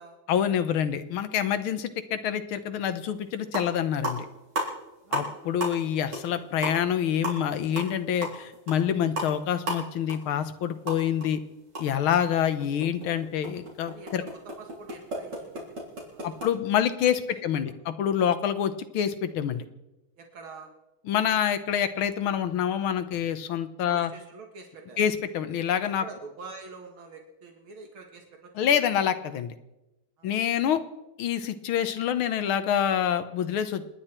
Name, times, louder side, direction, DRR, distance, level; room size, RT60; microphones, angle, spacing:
voice 1, 0.3-4.2 5.1-11.4 11.8-14.2 16.2-19.7 21.1-24.1 25.0-26.0 28.6-29.5 30.2-30.8 31.2-33.9, left 9 dB, 90° left, 11 dB, 1.8 m, -26 dB
sound 1, 3.1-3.2 3.4-3.8 4.0-5.3 5.6-5.9 6.1-6.3 6.6-11.3 11.6-16.5, right 1 dB, 55° right, 4.3 m, -34 dB
voice 2, 5.0-5.4 13.9-14.3 14.6-15.8 16.1-16.8 17.1-17.8 20.2-20.7 23.8-25.1 26.0-28.7 30.2-30.3, right 4 dB, 85° right, 3 dB, 2.6 m, -46 dB
29.0 x 9.9 x 4.4 m, 0.96 s
omnidirectional pair, 2.2 m